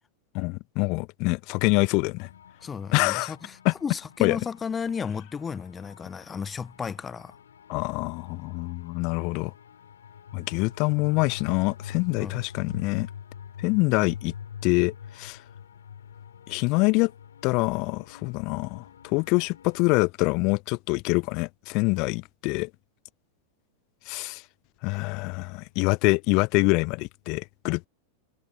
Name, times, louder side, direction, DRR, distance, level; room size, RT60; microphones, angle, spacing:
voice 1, 0.3-2.3 2.9-3.3 3.6-3.7 4.2-4.4 7.7-9.5 10.3-13.1 13.6-14.3 14.6-15.4 16.5-17.1 17.4-22.7 24.1-24.4 24.8-27.9, left 28 dB, 45° left, 0.6 m, -25 dB
sound 1, 2.2-20.0, left 8 dB, 65° left, 5.4 m, -44 dB
voice 2, 2.6-7.3 12.2-12.4, left 6 dB, 20° left, 1.1 m, -34 dB
figure-of-eight pair, 90°, 0 cm